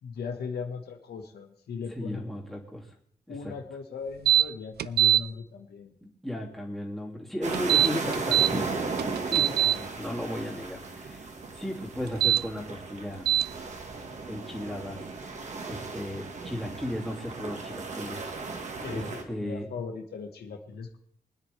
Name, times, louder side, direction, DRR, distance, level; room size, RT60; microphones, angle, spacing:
voice 1, 0.0-2.2 3.3-6.0 9.5-10.0 18.8-21.0, left 5 dB, 85° left, 3 dB, 1.6 m, -38 dB
voice 2, 1.9-2.9 3.4-3.5 6.0-8.8 9.3-9.5 10.0-13.3 14.3-15.0 15.7-18.3 18.9-19.7, equal, ahead, -3 dB, 2.7 m, -35 dB
sound 1, 4.3-4.4 4.8-5.2 7.5-8.5 9.0-9.7 12.1-12.4 13.3-13.4, right 11 dB, 80° right, 0.4 m, -21 dB
sound 2, 7.4-19.2, right 4 dB, 45° right, 1.8 m, -36 dB
24.5 x 9.9 x 3.5 m, 0.64 s
wide cardioid pair, 155°, 16 cm